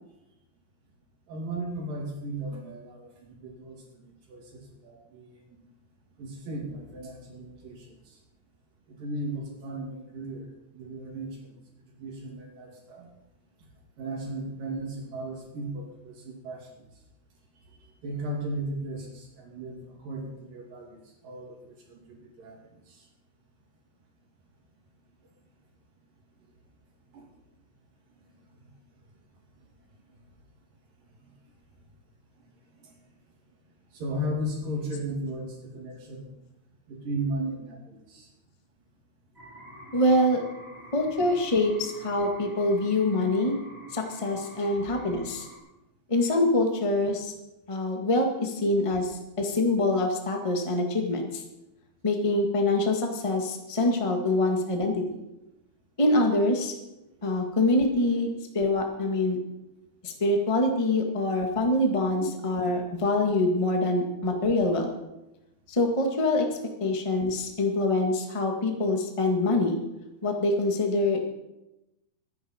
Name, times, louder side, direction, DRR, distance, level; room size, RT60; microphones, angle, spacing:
voice 1, 1.3-5.4 6.2-8.0 8.9-11.6 12.0-13.1 14.0-16.9 17.8-22.6 22.9-23.1 27.1-27.3 28.1-28.2 28.6-28.7 31.2-31.3 32.8-33.0 33.9-36.3 36.9-38.3 62.2-62.3 66.8-66.9, right 1 dB, 70° right, -1 dB, 4.2 m, -36 dB
sound 1, 39.3-45.6, equal, 5° right, 3.2 m, -48 dB
voice 2, 39.9-40.4 40.9-43.6 43.9-45.5 46.1-47.3 47.7-49.1 49.4-51.4 52.0-55.2 56.0-56.7 57.2-59.4 60.0-64.9 65.7-66.4 66.8-69.8 70.2-71.2, left 2 dB, 50° left, 2 dB, 0.3 m, -25 dB
23.5 x 10.0 x 4.4 m, 0.95 s
omnidirectional pair, 4.1 m